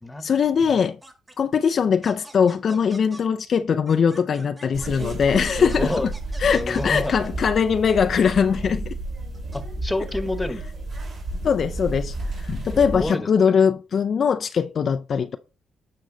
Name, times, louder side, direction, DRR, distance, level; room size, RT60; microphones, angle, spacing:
voice 1, 0.2-1.0 1.4-5.9 6.4-9.0 11.4-15.4, left 6 dB, 50° left, 0.4 m, -21 dB
sound 1, 0.7-1.3 2.0-3.2 3.9-5.0 5.7-7.5 8.2-8.4 9.3-9.6, right 1 dB, 15° right, 1.8 m, -45 dB
sound 2, 4.7-13.1, right 2 dB, 45° right, 5.5 m, -32 dB
voice 2, 5.6-6.1 6.5-7.2 9.5-10.6 12.7-13.5, left 1 dB, 10° left, 1.2 m, -29 dB
9.2 x 5.2 x 3.9 m
cardioid pair, 90°, 0 cm